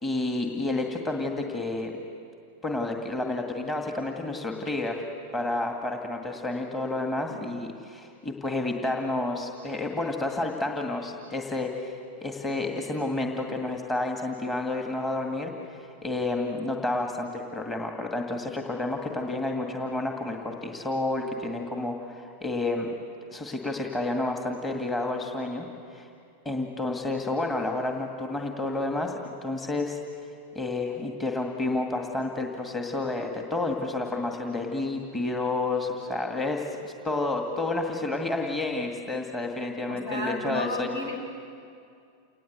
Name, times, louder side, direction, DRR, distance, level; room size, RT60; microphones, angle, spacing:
voice 1, 0.0-1.9 2.6-5.0 5.3-12.0 12.2-22.9 23.3-25.7 25.9-26.1 26.5-30.0 30.5-41.0, left 2 dB, 15° left, 2 dB, 2.1 m, -30 dB
voice 2, 39.9-41.2, left 1 dB, 65° left, 4 dB, 5.0 m, -32 dB
29.0 x 19.5 x 8.1 m, 2.4 s
figure-of-eight pair, 90°, 0 cm